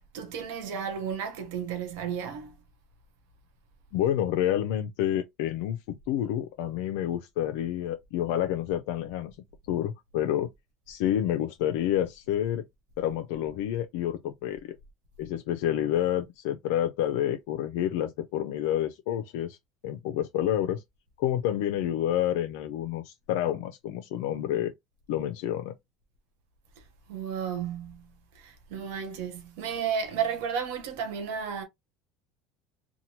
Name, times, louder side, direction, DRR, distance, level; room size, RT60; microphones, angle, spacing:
voice 1, 0.1-2.5 27.1-28.1 28.4-31.6, right 7 dB, 80° right, 0.8 m, -33 dB
voice 2, 3.9-9.4 9.7-10.5 10.9-12.6 13.0-14.8 15.2-19.6 19.8-20.8 21.2-24.7 25.1-25.7, left 11 dB, 75° left, 0.3 m, -29 dB
2.9 x 2.1 x 2.7 m
supercardioid pair, 110°, 0 cm